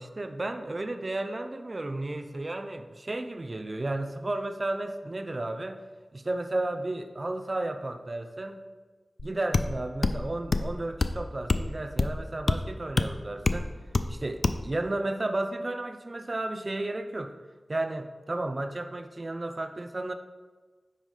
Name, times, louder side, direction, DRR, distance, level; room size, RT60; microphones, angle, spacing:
voice 1, 0.0-5.8 6.1-8.6 9.2-13.7 14.1-17.3 17.7-20.1, right 2 dB, 40° right, 7 dB, 0.5 m, -33 dB
sound 1, 9.2-9.3 9.5-9.7 10.0-10.2 10.5-10.7 11.0-11.2 11.5-11.7 12.0-12.2 12.5-12.6 13.0-13.1 13.5-13.6 13.9-14.1 14.4-14.6, left 3 dB, 60° left, 0.4 m, -25 dB
9.0 x 5.3 x 3.3 m, 1.4 s
wide cardioid pair, 75°, 0 cm